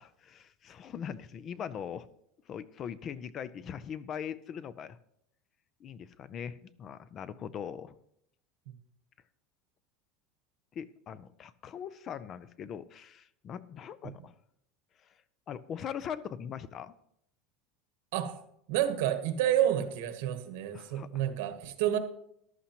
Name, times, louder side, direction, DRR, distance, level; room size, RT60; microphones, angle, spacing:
voice 1, 0.0-2.1 2.5-5.0 5.8-7.9 10.7-14.3 15.5-16.9 20.7-21.3, left 8 dB, 30° left, 0.4 m, -41 dB
voice 2, 18.7-22.0, right 11 dB, 75° right, 1.1 m, -29 dB
14.0 x 11.5 x 2.9 m
cardioid pair, 170°, 0 cm